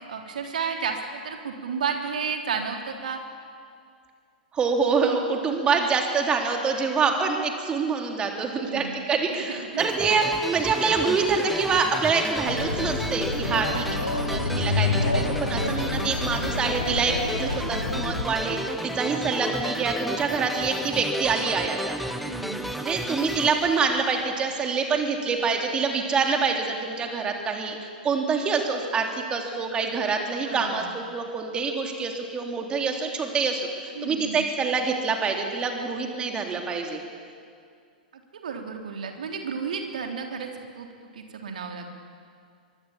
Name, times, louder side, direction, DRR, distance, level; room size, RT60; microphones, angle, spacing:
voice 1, 0.1-3.2 8.6-9.0 9.2-9.9 15.4-15.8 17.4-17.9 22.2-22.7 30.5-30.9 34.0-34.4 38.4-40.9 41.1-41.9, right 6 dB, 60° right, 3 dB, 3.4 m, -32 dB
voice 2, 4.5-17.1 17.7-22.0 22.7-37.0, right 5 dB, 20° right, 3 dB, 3.3 m, -26 dB
sound 1, 9.8-24.6, equal, ahead, 1.2 m, -33 dB
sound 2, 12.5-18.2, left 3 dB, 80° left, 2.5 m, -28 dB
25.0 x 23.0 x 7.4 m, 2.2 s
figure-of-eight pair, 100°, 5 cm